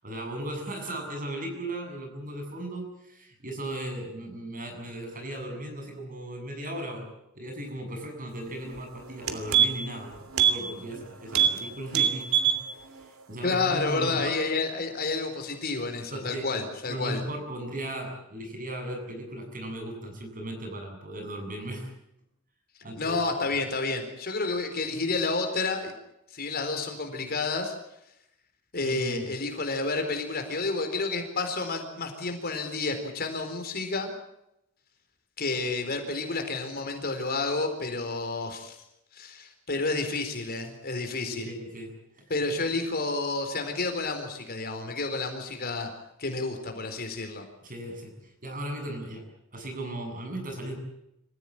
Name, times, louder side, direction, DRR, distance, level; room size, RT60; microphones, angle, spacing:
voice 1, 0.0-7.1 7.3-12.6 12.9-14.4 16.1-16.5 16.9-21.9 22.8-23.2 28.8-29.3 41.2-42.3 47.6-49.2 49.5-50.8, right 1 dB, 40° right, 3 dB, 7.7 m, -37 dB
sound 1, 8.7-8.8 9.1-10.0 10.3-10.6 10.9-11.0 11.3-11.6 11.9-12.6 13.0-13.1, right 9 dB, 90° right, 3.0 m, -23 dB
voice 2, 13.4-17.2 23.0-25.9 26.3-27.7 28.7-34.1 35.4-38.8 39.1-41.5 42.3-45.9 46.2-47.4, left 3 dB, 50° left, 6 dB, 4.3 m, -30 dB
26.5 x 15.5 x 8.8 m, 0.81 s
head